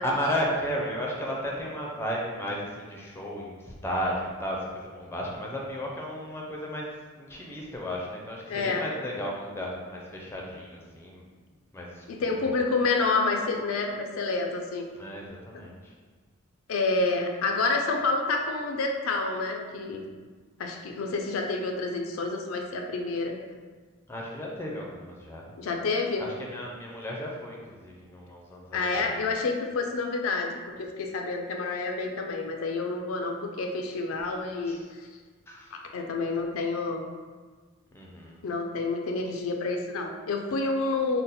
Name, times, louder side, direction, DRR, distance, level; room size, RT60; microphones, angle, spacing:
voice 1, 0.0-11.2 11.7-12.5 15.0-15.9 24.1-25.5 26.2-29.1 34.7-34.8 35.5-35.8 37.9-38.4, equal, 10° left, -2 dB, 0.4 m, -34 dB
voice 2, 8.5-8.9 12.1-14.8 15.5-15.6 16.7-20.0 20.6-23.3 25.5-26.2 28.7-30.5 30.8-34.8 35.7-37.0 38.4-41.2, left 3 dB, 75° left, 3 dB, 0.4 m, -28 dB
3.8 x 2.1 x 4.1 m, 1.4 s
head